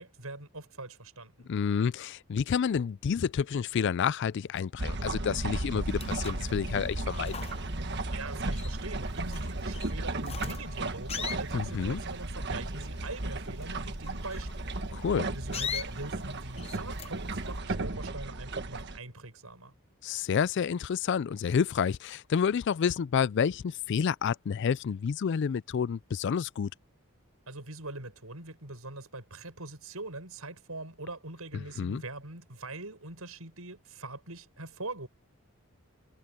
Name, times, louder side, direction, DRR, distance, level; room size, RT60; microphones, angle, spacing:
voice 1, 0.0-1.5 8.1-14.8 15.3-19.7 27.5-35.1, right 2 dB, 75° right, 7.3 m, -42 dB
voice 2, 1.5-7.4 11.5-12.0 14.9-15.3 20.0-26.7 31.5-32.0, left 7 dB, 55° left, 0.3 m, -29 dB
sound 1, 4.8-19.0, right 2 dB, 50° right, 1.5 m, -35 dB
sound 2, 5.8-17.5, left 7 dB, 25° left, 0.8 m, -42 dB
head